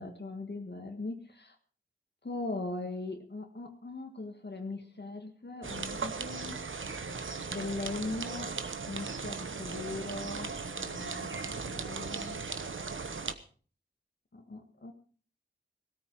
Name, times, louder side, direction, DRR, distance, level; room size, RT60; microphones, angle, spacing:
voice 1, 0.0-1.5 2.2-6.6 7.5-8.5 8.8-12.4 14.3-14.9, left 2 dB, 60° left, 4 dB, 1.6 m, -40 dB
sound 1, 5.6-13.3, right 4 dB, 85° right, 1.0 m, -37 dB
17.0 x 13.5 x 4.6 m, 0.42 s
wide cardioid pair, 60°, 20 cm